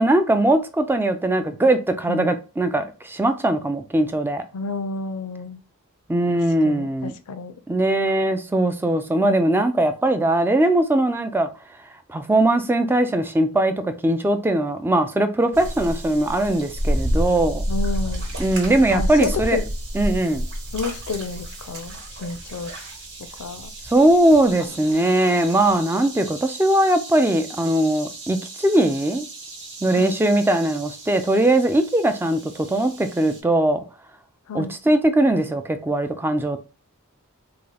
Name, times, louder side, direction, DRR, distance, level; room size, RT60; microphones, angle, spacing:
voice 1, 0.0-4.4 6.1-7.1 7.7-11.5 12.1-17.6 18.4-19.6 19.9-20.5 23.9-29.3 29.8-33.8 34.5-36.7, right 1 dB, 10° right, 0.3 m, -20 dB
voice 2, 4.5-5.6 6.6-7.5 17.7-18.3 18.9-19.7 20.7-22.7 23.4-23.7 24.9-25.0 29.9-30.2 34.5-34.8, left 4 dB, 80° left, 0.4 m, -30 dB
sound 1, 15.5-33.4, equal, 55° right, 1.1 m, -31 dB
3.6 x 2.3 x 3.3 m
head